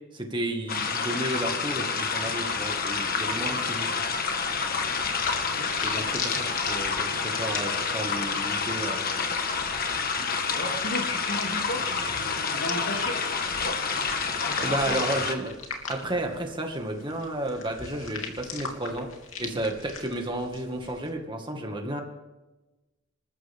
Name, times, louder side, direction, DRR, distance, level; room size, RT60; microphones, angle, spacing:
voice 1, 0.1-3.9 5.8-9.1 14.6-15.5 15.9-19.1 19.4-22.0, right 1 dB, 20° right, 2 dB, 2.0 m, -32 dB
sound 1, 0.7-15.3, left 5 dB, 45° left, 1.5 m, -28 dB
sound 2, 4.0-21.1, left 5 dB, 75° left, 2.9 m, -41 dB
voice 2, 4.8-6.2 10.2-13.8 14.4-15.1 19.4-19.6, left 1 dB, 60° left, 2 dB, 2.7 m, -36 dB
27.0 x 14.0 x 3.7 m, 1.1 s
head